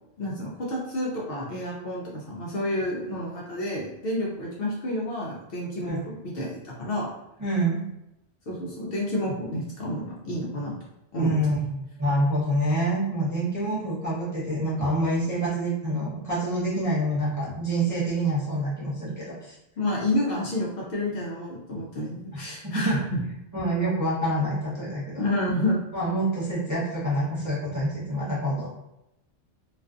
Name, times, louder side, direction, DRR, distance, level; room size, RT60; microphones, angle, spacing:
voice 1, 0.2-7.1 8.5-10.8 11.1-11.6 19.8-23.2 25.2-25.8, left 1 dB, 60° left, -4 dB, 0.6 m, -29 dB
voice 2, 7.4-7.8 11.2-19.5 22.3-22.4 22.7-23.0 23.5-25.2 25.9-28.7, right 1 dB, 20° right, -9 dB, 0.5 m, -26 dB
2.4 x 2.4 x 2.3 m, 0.86 s
omnidirectional pair, 1.3 m